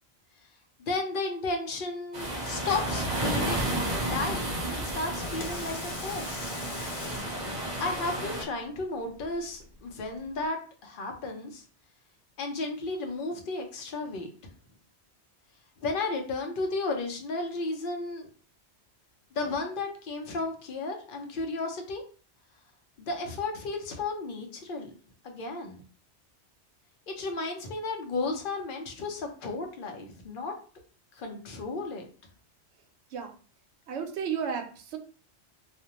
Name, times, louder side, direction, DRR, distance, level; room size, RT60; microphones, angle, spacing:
voice 1, 0.9-6.5 7.8-10.6 10.8-11.6 12.4-14.5 15.8-18.3 19.3-22.0 23.0-24.9 25.2-25.8 27.1-30.5 31.1-32.1, left 3 dB, 55° left, 4 dB, 0.7 m, -33 dB
sound 1, 2.1-8.4, right 1 dB, 55° right, 0.3 m, -32 dB
Water tap faucet / Sink (filling or washing), 5.2-10.5, left 3 dB, 90° left, 0.9 m, -45 dB
voice 2, 33.9-35.0, right 7 dB, 75° right, 5 dB, 0.8 m, -33 dB
2.4 x 2.1 x 2.8 m, 0.40 s
omnidirectional pair, 1.2 m